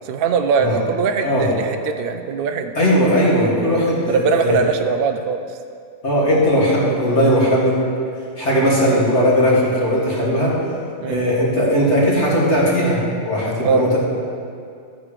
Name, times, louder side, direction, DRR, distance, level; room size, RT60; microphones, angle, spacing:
voice 1, 0.0-2.7 3.3-5.6 11.0-11.2 13.6-13.8, right 5 dB, 60° right, 6 dB, 0.6 m, -21 dB
voice 2, 2.8-4.6 6.0-7.8 8.4-10.6 11.0-14.0, equal, 60° left, -6 dB, 2.5 m, -18 dB
13.0 x 8.9 x 3.2 m, 2.4 s
omnidirectional pair, 1.3 m